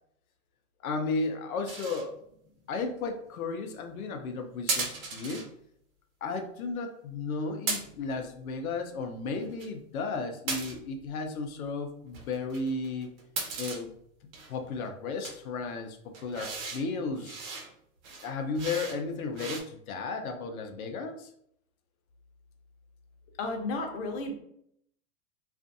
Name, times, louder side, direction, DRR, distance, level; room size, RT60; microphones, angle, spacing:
voice 1, 0.8-2.2 2.7-5.5 6.2-13.1 13.6-13.9 14.5-17.4 18.2-21.3, left 3 dB, 85° left, 5 dB, 0.7 m, -34 dB
sound 1, 1.7-2.1 4.7-5.5 7.7-8.2 9.3-9.7 10.5-11.0 12.1-13.8 14.3-14.7 15.2-15.4 16.1-16.8 17.2-17.7 18.0-19.0 19.3-19.6, right 4 dB, 75° right, 0.9 m, -36 dB
voice 2, 23.4-24.3, left 2 dB, 50° left, 2 dB, 0.8 m, -33 dB
2.5 x 2.5 x 2.5 m, 0.71 s
hypercardioid pair, 125°, 42 cm